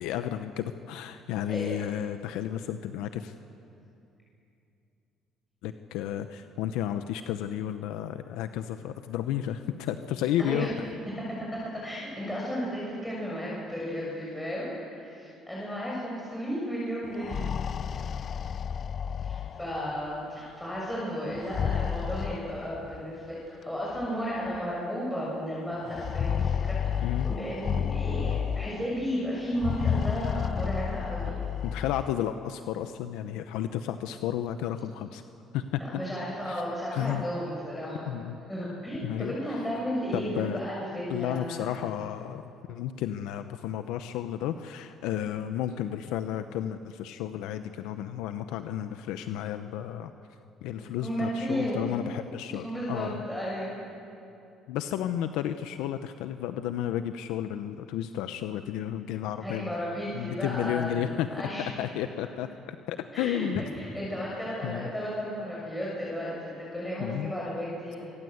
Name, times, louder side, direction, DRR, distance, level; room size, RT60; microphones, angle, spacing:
voice 1, 0.0-3.3 5.6-10.7 27.0-27.4 31.6-35.2 35.5-35.8 36.4-36.6 36.9-37.2 38.1-38.4 39.0-39.4 40.1-40.6 41.1-50.1 50.6-53.2 54.7-59.7 60.1-61.3 61.8-63.7 64.6-64.9 67.0-67.3, left 11 dB, 85° left, 9 dB, 0.9 m, -32 dB
voice 2, 1.5-1.9 10.4-10.7 11.3-11.4 11.7-17.5 19.2-31.4 35.8-38.1 38.5-41.8 51.0-51.8 52.6-53.8 59.4-61.7 63.1-68.1, equal, 5° left, -6 dB, 6.9 m, -34 dB
sound 1, 17.1-20.0 21.3-23.0 24.0-24.1 24.5-24.6 25.9-29.0 29.5-32.1, left 8 dB, 45° left, 0.5 m, -31 dB
25.5 x 22.0 x 8.0 m, 2.7 s
cardioid pair, 100°, 0 cm